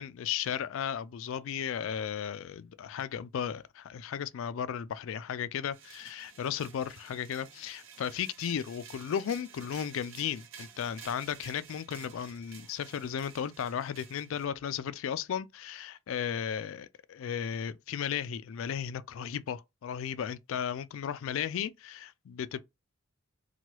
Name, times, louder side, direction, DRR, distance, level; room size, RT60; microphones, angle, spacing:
voice 1, 0.0-22.6, left 8 dB, 65° left, 0.3 m, -35 dB
sound 1, 5.7-14.5, right 7 dB, 60° right, 0.6 m, -52 dB
3.0 x 2.2 x 2.9 m
head